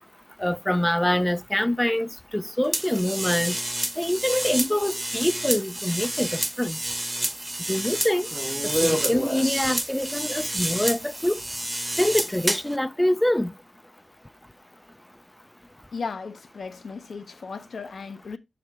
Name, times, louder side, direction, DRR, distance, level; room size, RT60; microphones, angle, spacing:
voice 1, 0.4-3.6 4.0-6.8 7.7-8.3 8.6-11.4 12.0-13.5, left 1 dB, 10° left, 0.4 m, -25 dB
sound 1, 2.7-12.8, right 1 dB, 15° right, 0.9 m, -29 dB
voice 2, 15.9-18.4, left 4 dB, 75° left, 0.7 m, -36 dB
6.4 x 4.2 x 4.7 m
cardioid pair, 60°, 0 cm